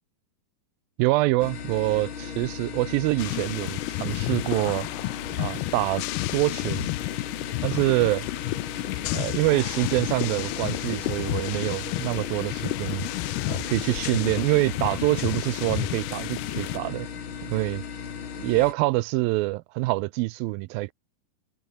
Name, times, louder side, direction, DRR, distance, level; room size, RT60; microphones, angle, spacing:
voice 1, 1.0-4.9 5.4-6.0 6.3-6.9 7.6-8.3 9.1-13.1 13.5-17.1 17.4-17.8 18.4-20.9, right 20 dB, 80° right, 2.2 m, -25 dB
sound 1, 1.4-18.7, left 7 dB, 40° left, 2.1 m, -37 dB
sound 2, 3.2-16.8, left 20 dB, 85° left, 2.6 m, -31 dB
omnidirectional pair, 4.6 m